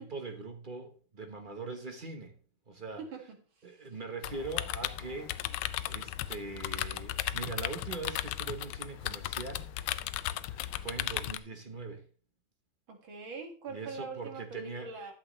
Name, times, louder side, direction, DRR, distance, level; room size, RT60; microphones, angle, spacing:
voice 1, 0.1-2.3 2.7-3.0 3.6-9.7 10.5-12.0 13.7-14.9, right 3 dB, 35° right, 0.8 m, -42 dB
voice 2, 3.6-3.9 12.9-15.1, right 4 dB, 65° right, 2.6 m, -43 dB
sound 1, 4.2-11.4, left 14 dB, 85° left, 1.5 m, -36 dB
11.5 x 7.4 x 3.1 m
omnidirectional pair, 2.4 m